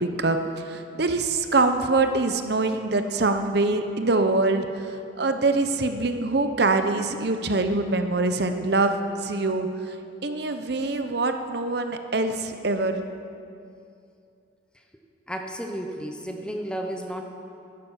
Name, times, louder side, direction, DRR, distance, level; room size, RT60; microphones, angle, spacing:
voice 1, 0.0-4.7 5.2-9.0 9.2-9.7 10.2-13.0, right 3 dB, 55° right, 7 dB, 0.8 m, -24 dB
voice 2, 15.3-17.2, equal, 5° left, 3 dB, 0.9 m, -32 dB
12.5 x 10.5 x 7.4 m, 2.5 s
head